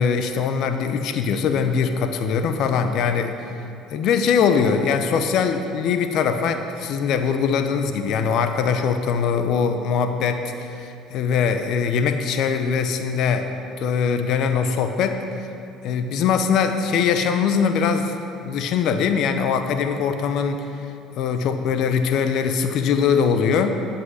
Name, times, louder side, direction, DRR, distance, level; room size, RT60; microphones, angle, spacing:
voice 1, 0.0-3.3 3.9-13.5 13.8-15.2 15.8-18.1 18.4-20.7 21.2-23.7, left 6 dB, 65° left, 8 dB, 0.8 m, -22 dB
11.0 x 5.9 x 8.0 m, 2.6 s
hypercardioid pair, 65°, 0 cm